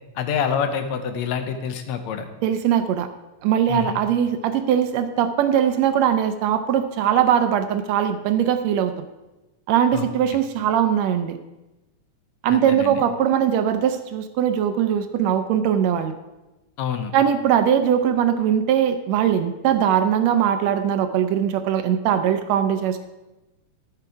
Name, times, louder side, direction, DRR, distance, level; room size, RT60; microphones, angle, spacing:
voice 1, 0.2-2.3 3.7-4.0 9.9-10.4 12.5-13.0 16.8-17.1, left 7 dB, 75° left, 8 dB, 2.0 m, -27 dB
voice 2, 2.4-3.1 3.4-9.1 9.7-11.4 12.4-16.2 17.1-23.0, right 9 dB, 75° right, 9 dB, 1.7 m, -21 dB
13.0 x 7.1 x 4.7 m, 1.0 s
omnidirectional pair, 3.3 m